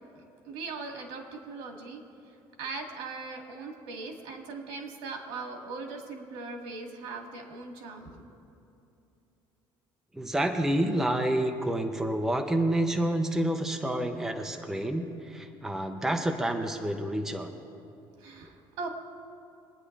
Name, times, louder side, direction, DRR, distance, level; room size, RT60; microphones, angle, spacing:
voice 1, 0.4-2.0 2.6-8.3 18.2-18.9, right 4 dB, 85° right, 2 dB, 2.2 m, -39 dB
voice 2, 10.1-17.5, right 1 dB, 5° right, 4 dB, 0.6 m, -28 dB
23.0 x 9.7 x 3.3 m, 2.8 s
cardioid pair, 180°, 9 cm